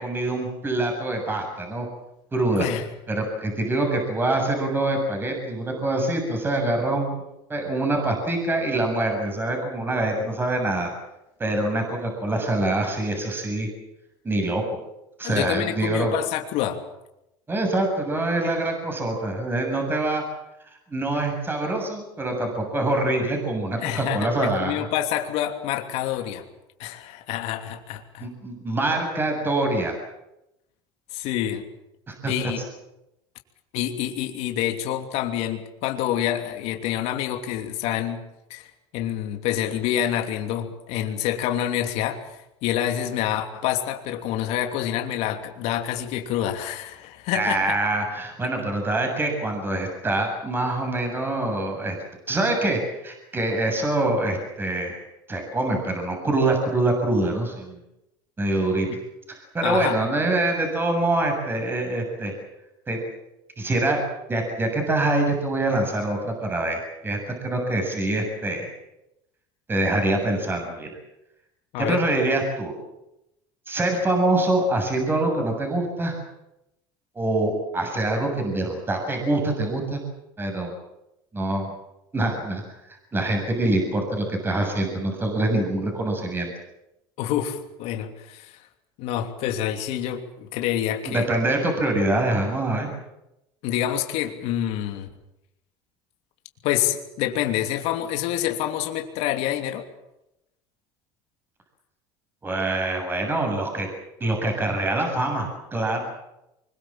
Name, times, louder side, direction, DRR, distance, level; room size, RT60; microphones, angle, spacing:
voice 1, 0.0-1.9 2.3-2.7 3.1-7.2 7.5-10.9 11.4-13.7 14.2-14.8 15.2-16.1 17.5-20.2 20.9-24.9 28.2-30.0 32.1-32.3 47.3-52.0 52.3-55.0 55.3-57.8 58.4-58.9 59.3-62.3 62.9-63.0 63.6-64.0 64.3-67.2 67.4-68.7 69.7-70.9 71.8-72.7 73.7-76.2 77.2-80.0 80.4-80.7 81.3-81.7 82.1-82.6 83.1-86.5 91.1-92.9 102.4-103.9 104.2-106.0, right 2 dB, 20° right, 3 dB, 7.2 m, -25 dB
voice 2, 15.2-16.8 23.8-26.4 26.8-28.3 31.1-31.6 32.3-32.6 33.7-38.2 38.5-47.6 59.6-60.0 71.7-72.0 87.2-88.6 89.0-91.3 93.6-95.1 96.6-99.8, left 11 dB, 70° left, 5 dB, 3.0 m, -27 dB
24.5 x 22.5 x 7.5 m, 0.88 s
supercardioid pair, 115°, 11 cm